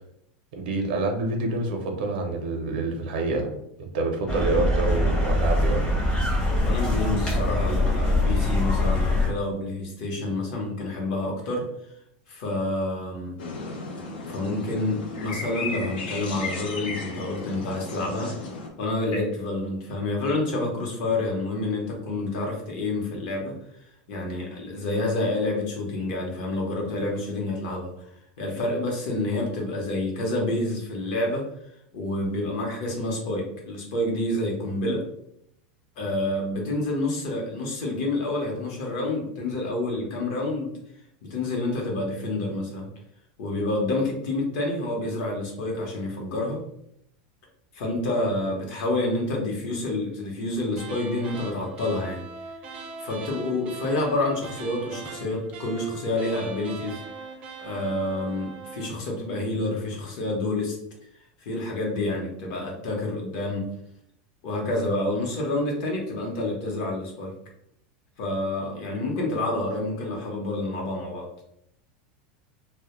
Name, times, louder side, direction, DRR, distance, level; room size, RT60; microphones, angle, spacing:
voice 1, 0.5-3.5 3.8-5.8, right 2 dB, 80° right, 3 dB, 0.5 m, -27 dB
sound 1, 4.3-9.3, left 1 dB, 15° left, 0.6 m, -23 dB
voice 2, 6.6-11.6 12.3-13.3 14.3-18.3 18.8-28.1 28.4-31.5 31.9-35.1 36.0-40.8 41.2-42.9 43.4-46.6 47.7-52.2 53.0-57.0 57.6-60.8 61.4-63.7 64.4-67.3 68.2-71.3, left 2 dB, 50° left, 0 dB, 0.7 m, -28 dB
sound 2, 13.4-18.7, left 3 dB, 90° left, 0.5 m, -35 dB
sound 3, 50.8-59.0, right 4 dB, 25° right, 0.3 m, -40 dB
2.1 x 2.0 x 2.9 m, 0.75 s
supercardioid pair, 170°, 5 cm